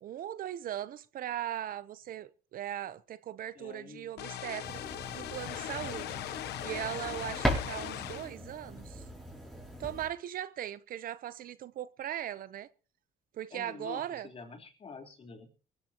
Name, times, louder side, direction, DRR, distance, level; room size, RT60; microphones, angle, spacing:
voice 1, 0.0-4.8 5.1-6.2 6.6-9.0 9.8-12.7 13.3-14.3, right 11 dB, 60° right, 0.8 m, -39 dB
voice 2, 3.5-4.1 13.5-15.5, left 4 dB, 35° left, 3.9 m, -47 dB
sound 1, 4.2-8.3, left 11 dB, 75° left, 1.1 m, -39 dB
sound 2, 4.6-10.1, equal, ahead, 6.6 m, -38 dB
23.0 x 14.5 x 3.0 m
cardioid pair, 110°, 17 cm